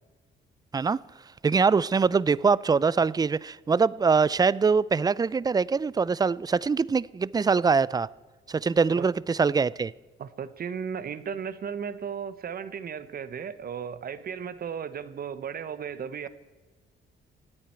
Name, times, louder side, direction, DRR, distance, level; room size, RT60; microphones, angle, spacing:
voice 1, 1.4-8.1 8.5-9.9, right 5 dB, 20° right, 0.4 m, -23 dB
voice 2, 10.2-16.3, right 7 dB, 50° right, 1.1 m, -35 dB
26.5 x 8.9 x 4.5 m
cardioid pair, 90°, 20 cm